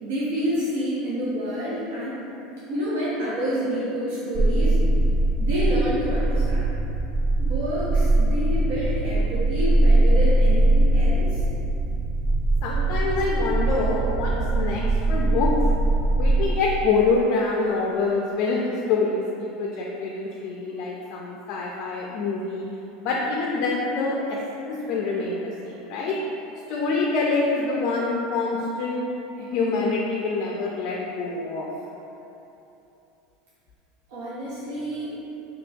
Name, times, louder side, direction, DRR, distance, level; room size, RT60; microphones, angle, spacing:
voice 1, 0.0-2.2 2.7-4.8 5.4-6.7 7.4-11.4 34.1-35.1, equal, 90° right, -10 dB, 0.8 m, -28 dB
sound 1, 4.4-16.5, right 2 dB, 40° right, 0.3 m, -21 dB
voice 2, 12.6-15.6 16.2-22.7 23.0-26.2 26.7-29.1 29.4-31.7, left 3 dB, 60° left, -2 dB, 0.3 m, -26 dB
2.9 x 2.3 x 3.8 m, 3.0 s
supercardioid pair, 120°, 0 cm